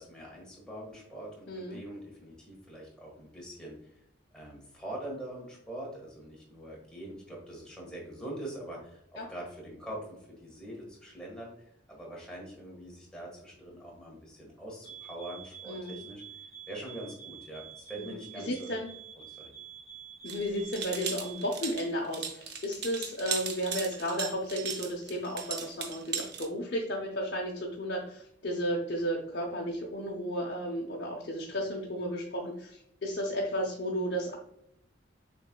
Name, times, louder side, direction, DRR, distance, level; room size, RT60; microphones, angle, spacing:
voice 1, 0.0-3.9 4.3-16.2 16.7-18.7 19.3-19.5, right 1 dB, 5° left, -3 dB, 1.4 m, -43 dB
voice 2, 1.5-1.8 9.2-9.3 15.7-16.0 18.0-18.9 20.2-34.4, equal, 60° left, -2 dB, 0.7 m, -33 dB
sound 1, 14.8-21.6, right 7 dB, 30° right, 1.4 m, -48 dB
sound 2, 20.3-26.5, right 6 dB, 60° right, 0.7 m, -37 dB
6.5 x 3.3 x 2.2 m, 0.74 s
head